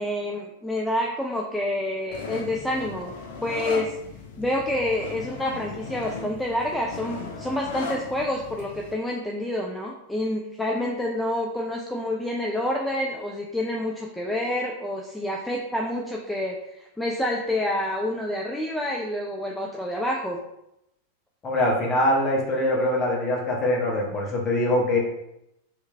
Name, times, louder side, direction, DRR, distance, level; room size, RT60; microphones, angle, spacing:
voice 1, 0.0-3.1 3.4-3.9 4.4-20.4, left 1 dB, 5° left, -1 dB, 0.4 m, -28 dB
sound 1, 2.1-8.9, left 4 dB, 55° left, 0.6 m, -37 dB
voice 2, 21.4-25.0, left 1 dB, 25° left, -2 dB, 1.2 m, -23 dB
3.4 x 3.1 x 3.2 m, 0.84 s
figure-of-eight pair, 90°, 0 cm